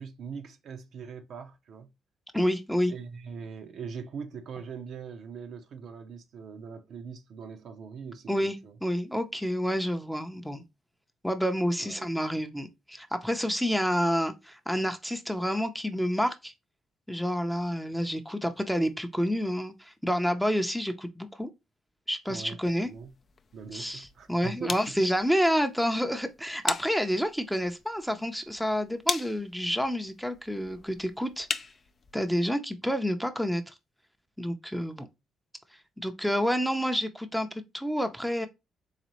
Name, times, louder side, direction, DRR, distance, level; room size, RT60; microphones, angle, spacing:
voice 1, 0.0-1.9 2.9-8.8 11.8-12.1 22.3-22.6 22.8-23.1 23.5-25.0, right 6 dB, 65° right, 0.6 m, -41 dB
voice 2, 2.3-2.9 8.3-10.6 11.2-16.5 17.1-21.5 22.1-22.9 23.7-31.5 32.1-33.7 34.4-35.1 36.0-38.5, equal, ahead, 0.6 m, -29 dB
sound 1, 22.6-32.4, left 5 dB, 45° left, 0.4 m, -39 dB
4.1 x 3.2 x 3.0 m
cardioid pair, 90°, 0 cm